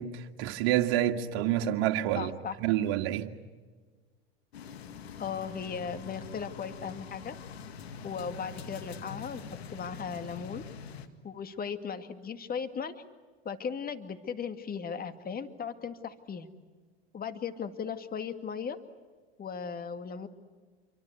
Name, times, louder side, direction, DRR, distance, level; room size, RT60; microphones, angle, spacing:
voice 1, 0.0-2.3 2.6-3.3, right 12 dB, 65° right, 2.0 m, -28 dB
voice 2, 2.1-2.6 5.2-7.3 8.0-9.4 9.7-10.6 11.2-13.0 13.4-16.5 17.1-18.8 19.4-20.3, left 6 dB, 30° left, 2.2 m, -37 dB
sound 1, 4.5-11.1, left 6 dB, 85° left, 2.1 m, -44 dB
28.0 x 24.0 x 8.2 m
hypercardioid pair, 90°, 31 cm